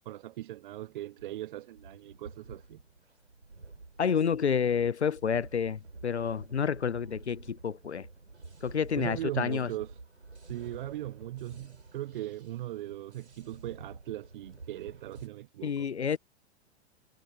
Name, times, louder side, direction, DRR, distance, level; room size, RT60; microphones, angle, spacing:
voice 1, 0.0-2.8 8.9-10.0 10.4-15.9, right 14 dB, 50° right, 0.9 m, -39 dB
sound 1, 1.2-15.3, right 3 dB, 80° right, 3.6 m, -50 dB
voice 2, 4.0-8.1 8.6-9.7 15.6-16.2, left 7 dB, 80° left, 0.7 m, -29 dB
figure-of-eight pair, 100°, 33 cm